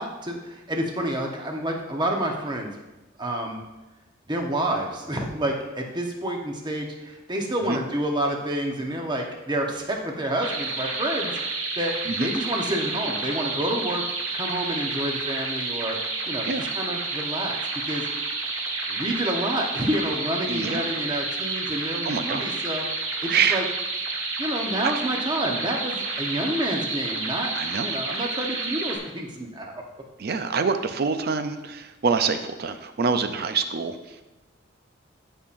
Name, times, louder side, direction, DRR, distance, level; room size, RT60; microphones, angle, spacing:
voice 1, 0.0-2.7 3.2-3.6 4.3-14.0 14.3-16.0 16.3-16.5 16.7-17.6 17.8-18.1 18.9-22.8 23.2-23.6 24.4-27.5 27.8-29.8, right 1 dB, 20° right, 1 dB, 1.0 m, -29 dB
sound 1, 10.4-29.0, right 3 dB, 70° right, 1.3 m, -30 dB
voice 2, 20.5-20.8 22.0-22.6 23.3-23.7 24.8-24.9 27.5-27.9 30.2-34.2, right 5 dB, 50° right, 9 dB, 0.5 m, -26 dB
13.0 x 5.6 x 2.6 m, 1.0 s
head